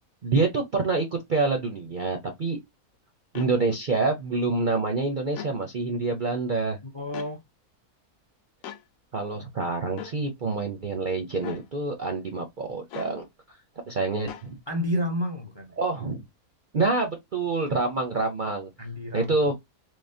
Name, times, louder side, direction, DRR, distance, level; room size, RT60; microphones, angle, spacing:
voice 1, 0.2-2.6 3.3-6.8 9.1-13.3 13.9-14.6 15.8-16.2 16.7-18.7 19.1-19.6, right 3 dB, 50° right, 0.6 m, -27 dB
sound 1, 3.3-3.5 5.3-5.6 7.1-7.3 8.6-8.8 10.0-10.2 11.4-11.7 12.9-13.2 14.3-14.5, left 10 dB, 70° left, 1.0 m, -39 dB
voice 2, 6.9-7.4 14.7-15.7 18.8-19.5, equal, 25° left, 0.6 m, -30 dB
3.8 x 3.1 x 2.6 m
omnidirectional pair, 1.6 m